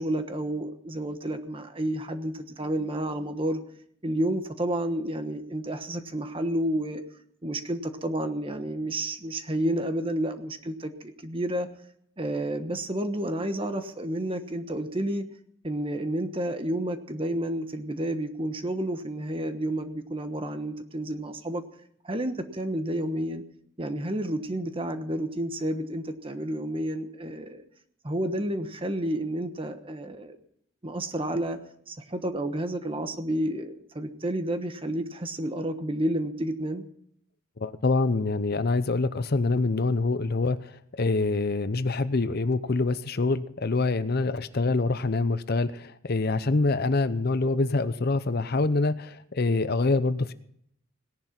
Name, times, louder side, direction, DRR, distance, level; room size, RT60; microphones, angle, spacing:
voice 1, 0.0-3.6 4.0-7.0 7.4-11.7 12.2-15.2 15.6-21.6 22.0-23.4 23.8-27.6 28.0-30.4 30.8-31.6 31.9-36.8, right 1 dB, 25° right, 8 dB, 1.2 m, -30 dB
voice 2, 37.6-50.3, left 3 dB, 50° left, 13 dB, 0.7 m, -25 dB
18.0 x 11.0 x 5.9 m, 0.68 s
head